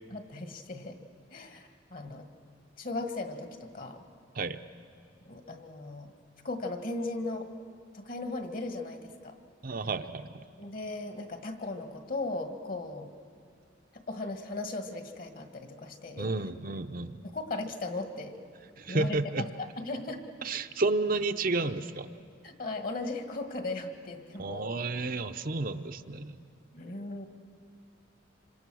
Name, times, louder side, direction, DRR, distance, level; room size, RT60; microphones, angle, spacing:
voice 1, 0.1-1.0 1.3-2.3 2.8-4.0 5.3-6.1 6.4-7.5 7.9-9.4 10.6-13.1 13.9-16.3 17.3-18.4 18.9-20.2 22.4-24.7 26.7-27.3, left 2 dB, 50° left, 7 dB, 1.7 m, -37 dB
voice 2, 9.6-10.3 16.2-17.2 18.8-19.4 20.4-22.1 24.4-26.3, right 3 dB, 50° right, 8 dB, 0.7 m, -31 dB
26.5 x 26.0 x 6.3 m, 2.2 s
head